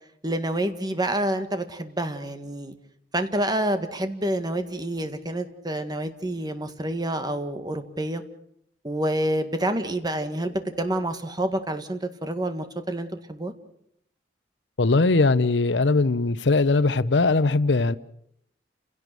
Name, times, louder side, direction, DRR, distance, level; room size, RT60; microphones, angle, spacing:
voice 1, 0.2-2.7 3.1-8.2 8.8-13.5, right 1 dB, 25° right, 1.8 m, -28 dB
voice 2, 14.8-18.0, left 3 dB, 85° left, 0.8 m, -20 dB
29.5 x 17.0 x 6.8 m
head